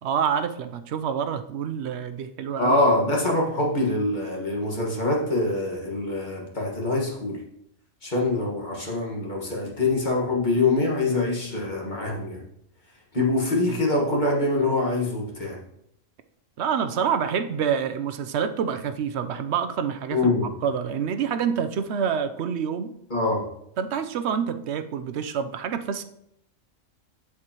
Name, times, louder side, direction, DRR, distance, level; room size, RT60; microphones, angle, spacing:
voice 1, 0.0-2.8 13.7-13.8 16.6-22.9 23.8-26.0, right 7 dB, 65° right, 9 dB, 0.9 m, -27 dB
voice 2, 2.6-7.4 8.0-12.4 13.1-15.6 20.1-20.5 23.1-23.4, left 2 dB, 35° left, -2 dB, 1.7 m, -24 dB
14.0 x 4.9 x 3.0 m, 0.76 s
omnidirectional pair, 1.3 m